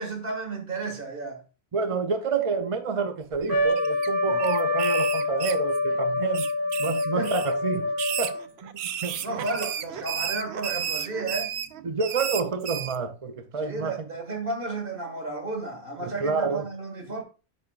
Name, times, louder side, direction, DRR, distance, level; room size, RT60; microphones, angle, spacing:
voice 1, 0.0-1.4 4.3-4.4 7.2-7.3 9.2-11.5 13.6-17.2, right 3 dB, 60° right, 2.0 m, -32 dB
voice 2, 1.7-6.5 6.8-9.5 11.8-14.1 16.0-16.7, right 5 dB, 40° right, 0.6 m, -29 dB
sound 1, 3.3-4.1 4.4-6.0 6.3-7.5 7.9-13.0, right 9 dB, 85° right, 0.9 m, -33 dB
Trumpet, 3.5-8.5, left 2 dB, 15° left, 1.8 m, -26 dB
8.8 x 6.7 x 2.4 m
omnidirectional pair, 1.1 m